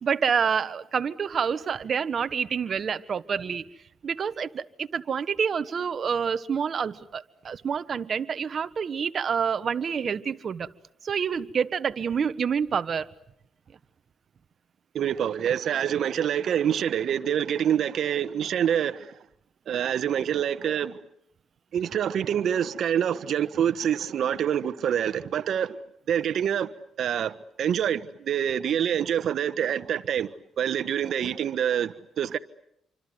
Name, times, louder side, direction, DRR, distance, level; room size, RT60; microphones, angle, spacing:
voice 1, 0.0-3.7 4.0-10.7 11.0-13.1, right 6 dB, 50° right, 1.3 m, -28 dB
voice 2, 14.9-19.2 19.7-21.0 21.7-25.8 26.1-26.7 27.0-30.3 30.6-32.4, right 9 dB, 65° right, 1.3 m, -26 dB
28.0 x 25.0 x 8.0 m
cardioid pair, 90°, 0 cm